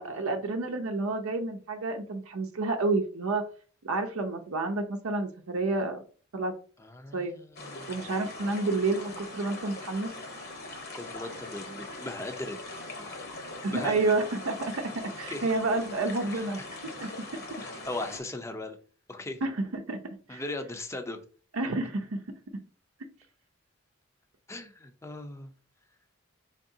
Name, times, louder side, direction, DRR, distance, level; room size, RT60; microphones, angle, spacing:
voice 1, 0.0-3.4 3.8-6.0 6.3-6.5 7.1-7.3 7.9-10.1 13.6-16.6 17.0-17.4 19.4-20.0 20.3-20.4 21.5-22.2 22.5-22.6, right 3 dB, 90° right, 3 dB, 0.6 m, -30 dB
voice 2, 6.8-8.3 10.9-12.6 13.0-13.3 13.7-14.2 15.3-15.5 16.3-16.4 17.5-18.8 19.1-19.4 20.3-21.2 24.5-25.5, left 2 dB, 15° left, 6 dB, 0.5 m, -39 dB
sound 1, 7.6-18.2, left 2 dB, 50° left, 0.9 m, -41 dB
4.7 x 3.6 x 2.7 m, 0.39 s
head